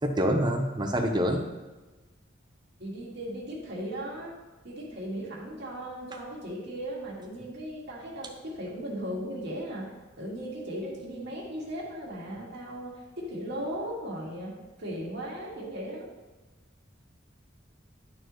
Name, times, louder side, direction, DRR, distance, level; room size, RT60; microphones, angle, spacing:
voice 1, 0.0-1.4, equal, 25° right, 4 dB, 0.8 m, -26 dB
voice 2, 2.8-4.3 4.6-14.5 14.8-16.1, equal, 60° right, -4 dB, 2.1 m, -37 dB
11.0 x 4.5 x 3.1 m, 1.2 s
head